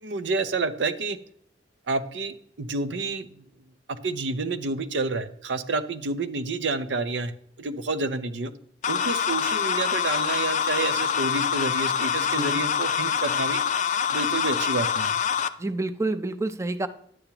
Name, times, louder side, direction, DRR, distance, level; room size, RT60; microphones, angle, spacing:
voice 1, 0.0-1.2 1.9-3.3 3.9-7.3 7.6-8.5 8.9-13.6 14.1-15.2, right 3 dB, 75° right, 12 dB, 0.6 m, -29 dB
sound 1, 8.8-15.5, left 7 dB, 40° left, 0.4 m, -25 dB
voice 2, 12.2-12.6 15.6-16.9, right 2 dB, 15° right, 11 dB, 0.5 m, -29 dB
10.5 x 8.5 x 2.9 m, 0.65 s
head